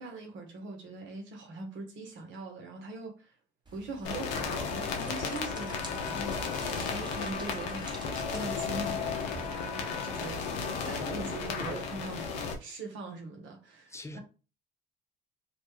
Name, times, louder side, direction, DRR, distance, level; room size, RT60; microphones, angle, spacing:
voice 1, 0.0-3.3 3.7-10.4 10.9-14.2, right 2 dB, 65° right, 1.0 m, -42 dB
sound 1, 3.7-9.6, equal, 20° right, 1.0 m, -48 dB
sound 2, 4.0-12.5, left 5 dB, 90° left, 0.6 m, -34 dB
voice 2, 13.9-14.2, left 2 dB, 15° left, 0.6 m, -44 dB
2.5 x 2.2 x 3.1 m
hypercardioid pair, 65°, 21 cm